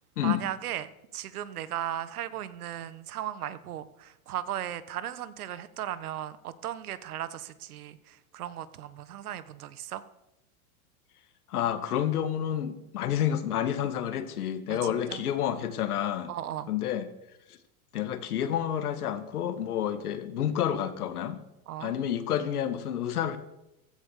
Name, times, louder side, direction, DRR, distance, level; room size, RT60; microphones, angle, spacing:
voice 1, 0.2-10.0 14.7-15.2 16.3-16.7 21.7-22.0, right 11 dB, 80° right, 14 dB, 1.5 m, -36 dB
voice 2, 11.5-16.3 16.7-17.1 17.9-21.4 21.8-23.4, left 10 dB, 85° left, 10 dB, 2.2 m, -29 dB
15.5 x 13.5 x 6.7 m, 0.89 s
supercardioid pair, 130°, 44 cm